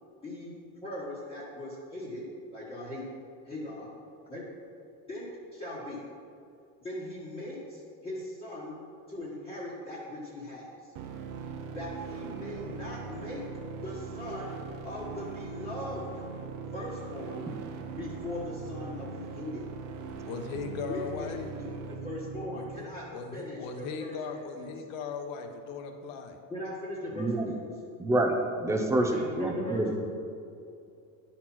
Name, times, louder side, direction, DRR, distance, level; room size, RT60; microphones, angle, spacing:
voice 1, 0.2-0.5 0.8-2.2 2.5-3.0 3.4-3.9 4.3-4.4 5.1-5.3 5.5-6.0 6.8-8.8 9.1-10.9 11.7-13.4 13.8-14.6 14.8-16.3 16.7-17.5 18.0-19.7 20.9-23.0 23.3-24.7 26.5-27.7 29.1-29.9, left 1 dB, 15° left, -8 dB, 1.3 m, -39 dB
sound 1, 11.0-22.9, right 5 dB, 50° right, 0.8 m, -40 dB
voice 2, 20.3-21.4 22.5-22.8 23.1-26.4, left 5 dB, 80° left, 4 dB, 1.2 m, -38 dB
voice 3, 27.1-27.5 28.0-28.3 28.6-29.1 29.4-29.9, right 1 dB, 5° right, 3 dB, 0.6 m, -27 dB
11.5 x 4.3 x 6.0 m, 2.5 s
cardioid pair, 160°, 39 cm